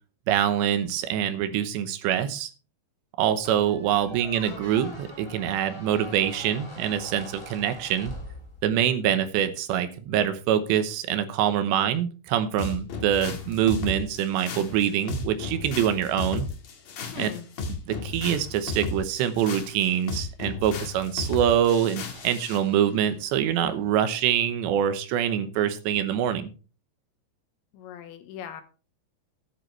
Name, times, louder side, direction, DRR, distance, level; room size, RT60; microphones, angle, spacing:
voice 1, 0.3-2.5 3.2-8.1 8.6-16.5 17.2-17.3 17.9-26.5, right 10 dB, 75° right, 10 dB, 3.1 m, -25 dB
Squeak, 3.4-8.9, left 1 dB, 15° left, 1.1 m, -43 dB
sound 1, 12.6-22.7, left 4 dB, 55° left, 3.3 m, -34 dB
voice 2, 17.1-17.5 27.7-28.6, left 9 dB, 85° left, 8 dB, 3.7 m, -39 dB
13.5 x 10.5 x 3.3 m, 0.35 s
omnidirectional pair, 5.2 m